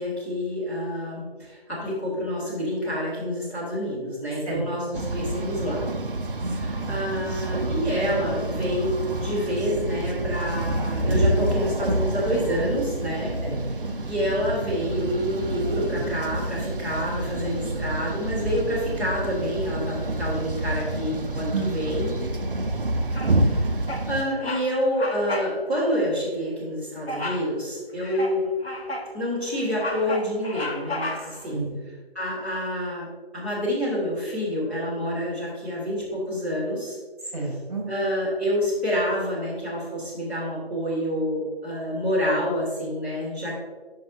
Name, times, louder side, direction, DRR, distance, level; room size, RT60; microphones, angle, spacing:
voice 1, 0.0-5.8 6.5-8.9 9.2-13.3 14.0-22.1 23.4-23.7 24.1-28.4 29.1-31.6 32.1-33.1 33.3-37.0 37.9-43.5, equal, 10° left, -13 dB, 1.6 m, -28 dB
sound 1, 4.9-24.2, right 1 dB, 60° right, 0.7 m, -28 dB
voice 2, 6.4-6.9 13.4-14.0 21.5-22.2 31.4-31.8 37.3-37.8, right 3 dB, 35° right, -2 dB, 1.9 m, -31 dB
Bird vocalization bird call bird song, 23.1-23.5 23.9-24.1 24.4-24.7 24.9-25.5 25.9-26.0 27.1-27.5 28.0-29.1 29.5-31.5, left 1 dB, 75° left, 1.1 m, -33 dB
11.5 x 5.4 x 2.7 m, 1.4 s
figure-of-eight pair, 165°, 31 cm